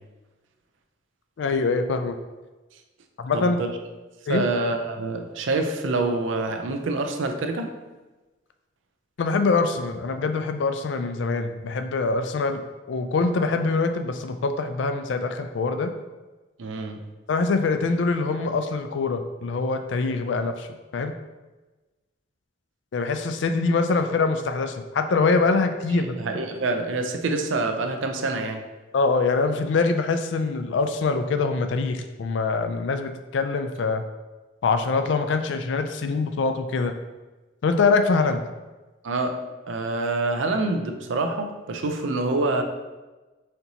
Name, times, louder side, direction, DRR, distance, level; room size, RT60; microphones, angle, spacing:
voice 1, 1.4-2.2 3.2-3.6 4.3-4.4 9.2-12.6 12.9-15.9 17.3-20.7 20.9-21.1 22.9-26.1 28.9-34.0 34.6-36.9 37.6-38.4, left 4 dB, 70° left, 7 dB, 0.4 m, -24 dB
voice 2, 3.3-3.7 4.3-7.7 16.6-17.0 25.9-28.7 39.0-42.6, right 2 dB, 80° right, 6 dB, 0.5 m, -26 dB
4.3 x 2.8 x 3.9 m, 1.2 s
head